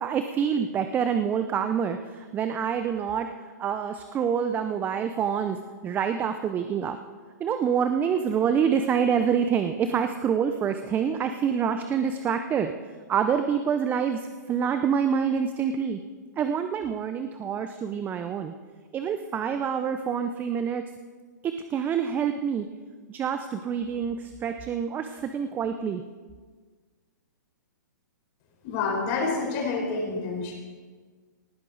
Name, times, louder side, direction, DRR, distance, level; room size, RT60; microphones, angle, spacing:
voice 1, 0.0-3.3 3.6-5.6 5.8-7.0 7.4-12.7 13.1-14.2 14.5-16.0 16.4-18.5 18.9-20.8 21.4-22.7 23.1-26.0, right 7 dB, 20° right, 8 dB, 0.6 m, -26 dB
voice 2, 28.6-30.5, left 4 dB, 40° left, 1 dB, 4.3 m, -28 dB
18.5 x 11.0 x 4.0 m, 1.5 s
hypercardioid pair, 130°, 10 cm